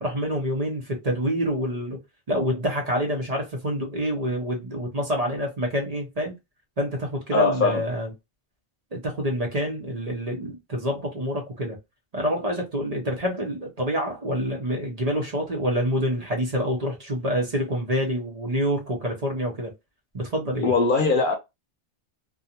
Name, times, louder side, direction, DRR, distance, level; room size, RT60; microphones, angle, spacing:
voice 1, 0.0-2.0 2.3-6.3 6.8-8.1 8.9-11.8 12.1-19.7 20.1-20.7, equal, 40° right, 0.8 m, -27 dB
voice 2, 7.3-7.8 20.6-21.3, left 4 dB, 55° left, 0.8 m, -21 dB
2.5 x 2.3 x 2.8 m
omnidirectional pair, 1.0 m